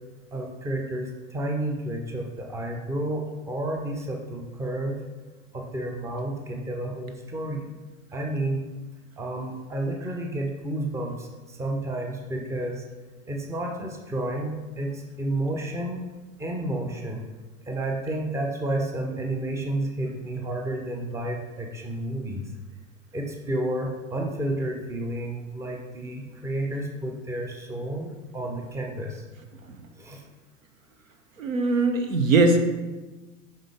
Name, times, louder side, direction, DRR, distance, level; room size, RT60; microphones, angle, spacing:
voice 1, 0.3-5.0 5.5-7.7 8.1-8.7 9.2-12.8 13.3-16.0 16.4-17.2 17.7-22.4 23.1-29.2 30.0-30.2, right 1 dB, 5° right, 1 dB, 0.8 m, -31 dB
voice 2, 31.4-32.6, right 3 dB, 70° right, 5 dB, 1.0 m, -21 dB
7.5 x 5.5 x 3.5 m, 1.2 s
figure-of-eight pair, 90°, 41 cm